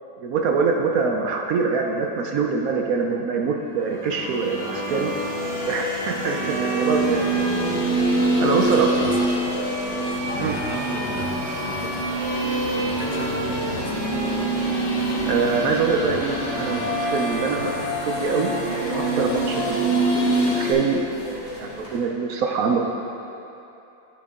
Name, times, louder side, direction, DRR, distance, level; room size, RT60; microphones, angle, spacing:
voice 1, 0.2-5.1 5.6-7.2 8.4-8.9 10.4-10.6 12.8-12.9 15.3-17.6 18.2-18.5 18.9-21.0 21.6-22.8, right 5 dB, 70° right, 1 dB, 0.9 m, -24 dB
sound 1, 3.8-20.7, right 1 dB, 40° left, 1.8 m, -26 dB
Bowed string instrument, 4.4-18.5, right 2 dB, 50° right, 1.5 m, -33 dB
sound 2, 7.4-22.0, equal, 20° left, 1.8 m, -38 dB
voice 2, 8.6-9.2 10.3-12.2 12.8-14.0 16.0-16.2 16.6-16.9 17.5-17.9, left 4 dB, 65° left, 1 dB, 0.9 m, -36 dB
12.5 x 4.7 x 3.6 m, 2.9 s
omnidirectional pair, 1.8 m